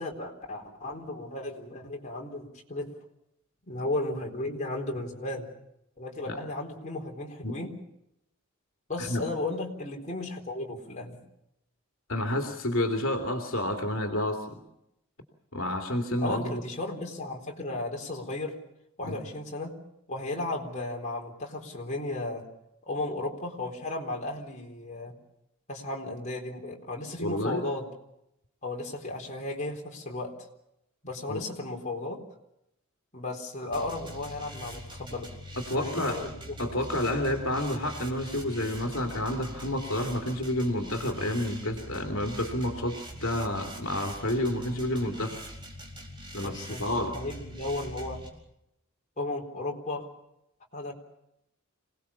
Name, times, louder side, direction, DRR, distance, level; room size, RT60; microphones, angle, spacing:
voice 1, 0.0-2.9 3.7-5.5 6.0-7.7 8.9-11.2 16.2-18.6 19.0-19.8 20.1-22.4 22.9-25.2 25.7-27.9 28.6-30.5 31.0-32.2 33.1-35.3 35.7-36.8 46.4-48.2 49.2-50.1 50.7-50.9, left 2 dB, 35° left, 0 dB, 4.1 m, -35 dB
voice 2, 12.1-14.6 15.5-16.6 19.0-19.3 27.2-27.6 31.3-31.4 35.7-36.2 36.6-45.4 46.3-47.2, left 1 dB, 70° left, 3 dB, 2.8 m, -30 dB
sound 1, 33.7-48.3, equal, 25° right, 4.5 m, -43 dB
27.0 x 19.0 x 7.2 m, 0.82 s
head